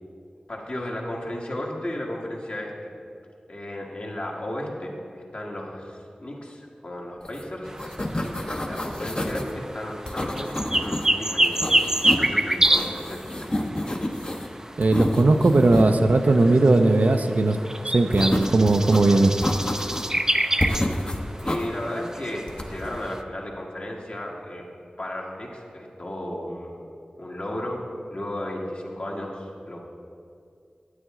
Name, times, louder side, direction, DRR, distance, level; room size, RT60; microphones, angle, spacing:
voice 1, 0.5-2.9 3.5-7.7 8.2-11.8 12.0-14.1 21.4-24.6 25.0-26.8 27.2-27.8 28.1-29.8, left 1 dB, 50° left, -2 dB, 1.6 m, -34 dB
sound 1, 7.3-7.4 7.7-9.5 10.1-11.1 11.4-12.3 12.6-14.5 14.8-15.9 18.1-19.0 19.4-20.2 20.6-21.7 22.5-22.9, left 1 dB, 35° left, 0.8 m, -29 dB
sound 2, 7.7-23.2, right 1 dB, 20° right, 0.4 m, -28 dB
voice 2, 14.8-17.6 17.9-19.3, right 2 dB, 70° right, 7 dB, 0.5 m, -18 dB
9.4 x 8.7 x 3.7 m, 2.4 s
cardioid pair, 40°, 3 cm